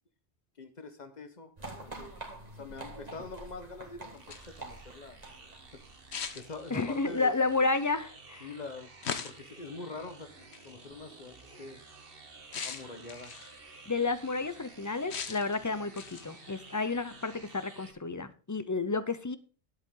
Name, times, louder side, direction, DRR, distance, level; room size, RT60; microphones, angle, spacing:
voice 1, 0.6-1.5 1.8-2.2 2.6-4.2 4.6-5.2 5.7-5.8 6.3-7.4 8.4-8.9 9.2-11.8 12.6-13.3, left 3 dB, 40° left, 8 dB, 1.4 m, -44 dB
sound 1, 1.6-6.3, right 2 dB, 35° right, 1.9 m, -46 dB
sound 2, 4.1-4.6 6.1-7.1 9.0-9.6 10.5-10.7 12.5-13.6 15.1-15.6 16.0-16.4, left 6 dB, 70° left, 1.3 m, -39 dB
sound 3, 4.2-17.9, right 3 dB, 55° right, 1.6 m, -53 dB
voice 2, 6.7-8.5 13.9-19.4, left 3 dB, 20° left, 13 dB, 0.5 m, -31 dB
11.0 x 8.1 x 3.8 m, 0.37 s
omnidirectional pair, 1.2 m